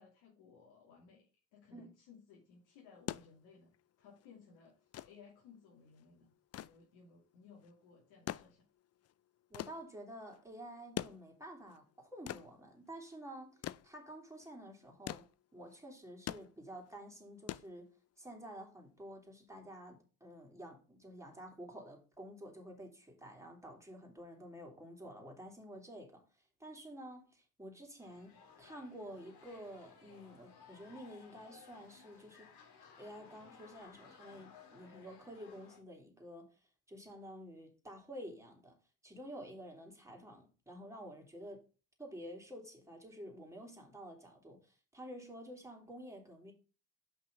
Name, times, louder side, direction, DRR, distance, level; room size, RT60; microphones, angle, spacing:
voice 1, 0.0-4.8 5.0-8.7, left 5 dB, 70° left, 2.5 m, -60 dB
sound 1, 2.8-18.3 19.6-19.7, left 12 dB, 35° left, 0.5 m, -47 dB
voice 2, 9.5-15.2 15.5-17.9 18.2-26.2 26.6-32.5 33.0-36.5 36.9-38.8 39.0-41.6 42.0-46.5, equal, 5° right, 3.5 m, -50 dB
sound 2, 28.0-35.8, left 6 dB, 55° left, 2.3 m, -59 dB
5.8 x 5.7 x 5.4 m
hypercardioid pair, 50°, 46 cm